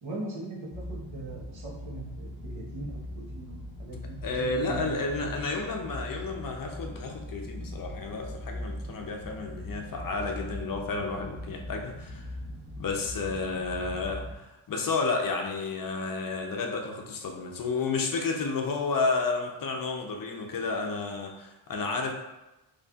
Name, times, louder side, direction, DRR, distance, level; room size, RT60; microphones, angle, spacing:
voice 1, 0.0-4.2 4.6-4.9 5.2-5.3, right 2 dB, 70° right, -4 dB, 1.1 m, -40 dB
sound 1, 0.7-14.3, left 1 dB, 20° right, 1.0 m, -40 dB
voice 2, 4.2-12.3 12.8-22.1, left 3 dB, 45° left, 2 dB, 0.6 m, -31 dB
4.0 x 3.2 x 2.3 m, 1.0 s
wide cardioid pair, 140°, 48 cm